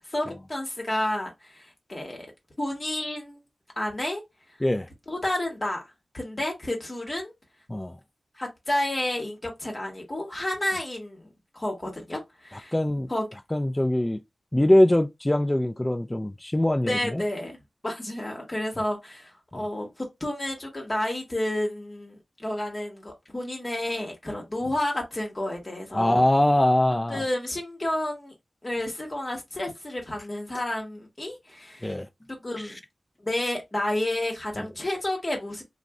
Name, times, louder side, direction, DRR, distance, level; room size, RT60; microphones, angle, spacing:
voice 1, 0.1-2.2 2.6-3.4 3.8-4.2 5.1-5.8 6.1-7.3 8.4-11.3 11.5-12.7 13.1-13.2 16.9-17.6 17.8-26.3 27.1-28.3 28.6-31.9 32.4-32.8 33.2-35.6, left 1 dB, 35° left, 1.1 m, -30 dB
voice 2, 12.7-13.1 13.5-14.2 14.5-17.2 19.5-19.6 25.9-27.2 31.8-32.1 34.6-34.7, left 1 dB, 20° left, 0.4 m, -22 dB
2.5 x 2.1 x 3.5 m
wide cardioid pair, 60°, 0 cm